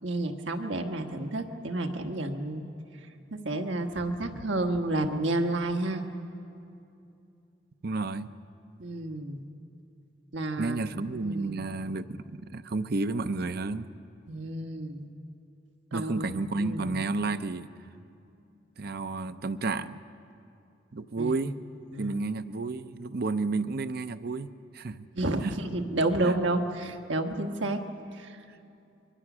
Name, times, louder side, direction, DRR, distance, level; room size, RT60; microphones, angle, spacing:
voice 1, 0.0-2.6 3.3-6.0 8.8-9.4 10.3-10.8 11.1-11.6 14.3-15.1 15.9-17.0 21.2-21.4 21.9-22.2 25.1-27.8 28.1-28.4, right 2 dB, 80° right, 4 dB, 1.5 m, -30 dB
voice 2, 7.8-8.3 10.6-13.9 15.9-17.7 18.8-20.0 20.9-21.5 22.0-25.1 25.4-25.5 26.2-26.4 28.5-28.6, right 3 dB, 55° right, 11 dB, 0.6 m, -31 dB
25.5 x 23.0 x 6.2 m, 2.7 s
head